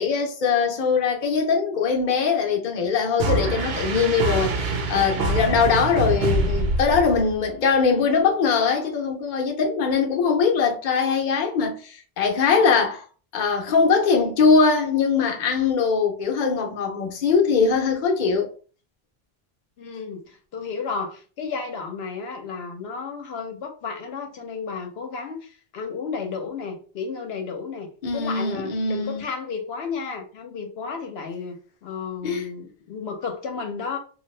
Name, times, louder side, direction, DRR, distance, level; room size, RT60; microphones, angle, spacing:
voice 1, 0.0-13.0 13.3-18.5 28.0-29.2 32.2-32.5, left 5 dB, 55° left, 0.8 m, -21 dB
sound 1, 3.2-7.5, right 2 dB, 80° right, 0.8 m, -25 dB
voice 2, 19.8-34.0, left 5 dB, 80° left, 0.9 m, -33 dB
2.7 x 2.3 x 3.2 m
omnidirectional pair, 1.0 m